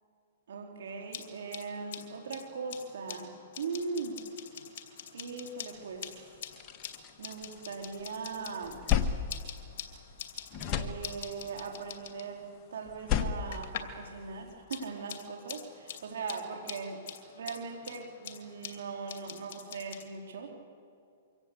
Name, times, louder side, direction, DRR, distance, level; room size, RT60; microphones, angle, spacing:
voice 1, 0.5-4.2 5.1-6.1 7.2-8.8 10.7-17.0 17.3-20.6, right 4 dB, 75° right, 2 dB, 3.2 m, -40 dB
sound 1, 0.9-14.0 14.3-20.1, left 8 dB, 55° left, 2.8 m, -46 dB
sound 2, 5.9-6.0 6.3-8.0 8.4-10.2 10.5-11.6 12.8-14.5, left 9 dB, 30° left, 1.4 m, -33 dB
24.0 x 17.0 x 8.4 m, 2.4 s
hypercardioid pair, 135°, 0 cm